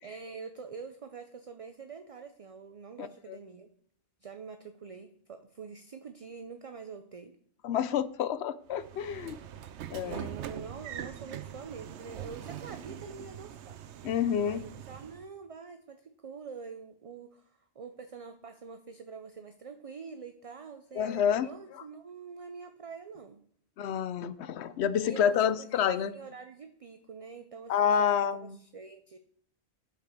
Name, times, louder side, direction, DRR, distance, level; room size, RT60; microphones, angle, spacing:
voice 1, 0.0-3.7 4.2-7.4 10.0-13.8 14.4-23.4 25.0-29.2, right 5 dB, 40° right, 7 dB, 0.5 m, -45 dB
voice 2, 3.0-3.4 7.6-9.4 9.9-10.3 14.0-14.6 21.0-21.5 21.7-21.8 23.8-26.1 27.7-28.6, left 8 dB, 75° left, 15 dB, 0.9 m, -28 dB
Train / Sliding door, 8.7-15.3, right 10 dB, 85° right, 0.9 m, -43 dB
8.1 x 5.9 x 6.0 m, 0.65 s
omnidirectional pair, 1.1 m